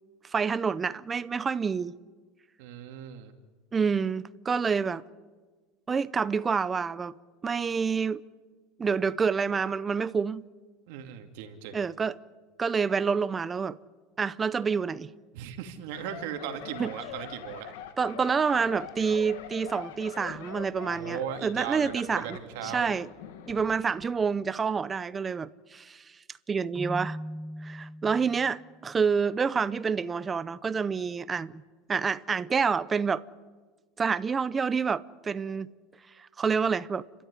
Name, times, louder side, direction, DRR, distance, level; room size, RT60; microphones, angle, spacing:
voice 1, 0.3-2.0 3.7-5.0 5.9-7.1 7.4-8.2 8.8-10.4 11.7-12.2 12.6-13.8 14.2-15.1 16.8-16.9 18.0-22.4 22.6-23.1 23.5-26.0 26.5-27.2 27.6-31.6 31.9-33.2 34.0-35.7 36.2-37.1, right 5 dB, 15° right, 0.6 m, -28 dB
voice 2, 2.6-3.3 10.9-11.8 15.3-17.7 20.9-22.9, right 10 dB, 70° right, 2.5 m, -37 dB
sound 1, 15.9-23.7 24.0-24.2, left 8 dB, 80° left, 2.0 m, -43 dB
Keyboard (musical), 26.8-28.6, equal, 5° left, 0.9 m, -38 dB
29.5 x 13.0 x 9.7 m
supercardioid pair, 155°, 0 cm